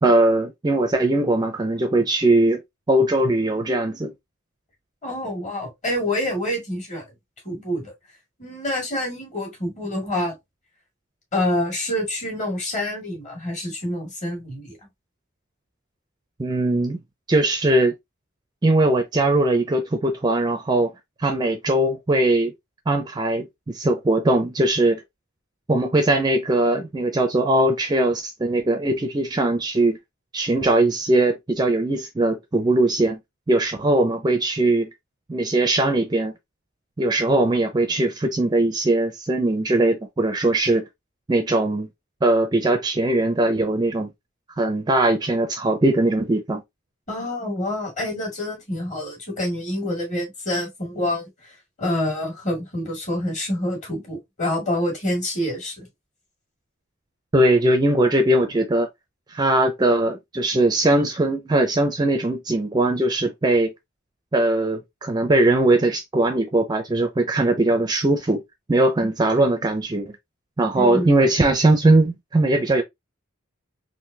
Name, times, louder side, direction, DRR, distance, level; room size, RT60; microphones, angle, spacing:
voice 1, 0.0-2.6 2.9-4.1 16.4-17.0 17.3-17.9 18.6-20.9 21.2-22.5 22.9-25.0 25.7-30.0 30.3-33.2 33.5-34.9 35.3-36.3 37.0-40.9 41.3-41.9 42.2-44.1 44.6-46.6 57.3-58.9 59.3-63.7 64.3-68.4 68.7-70.1 70.6-72.8, right 2 dB, 20° right, 0.4 m, -20 dB
voice 2, 5.0-7.0 7.4-7.9 8.4-10.4 11.3-14.8 47.1-55.9 70.8-71.1, left 1 dB, 35° left, 1.9 m, -27 dB
3.8 x 2.6 x 2.7 m
head